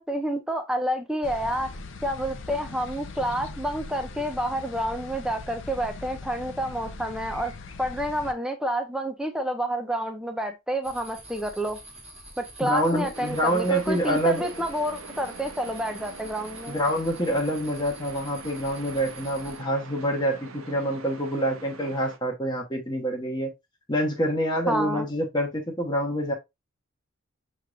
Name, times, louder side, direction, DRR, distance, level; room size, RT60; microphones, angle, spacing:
voice 1, 0.0-1.7 2.0-7.5 7.8-11.8 12.4-16.8 24.7-25.1, right 1 dB, 5° right, 0.6 m, -29 dB
sound 1, 1.2-8.3, left 3 dB, 60° left, 0.6 m, -40 dB
sound 2, 10.8-19.6, right 1 dB, 30° right, 1.2 m, -46 dB
voice 2, 12.6-14.5 16.7-23.5 23.9-26.3, equal, 20° left, 0.9 m, -26 dB
sound 3, 13.1-22.2, right 4 dB, 80° right, 0.7 m, -44 dB
7.1 x 3.1 x 2.4 m
head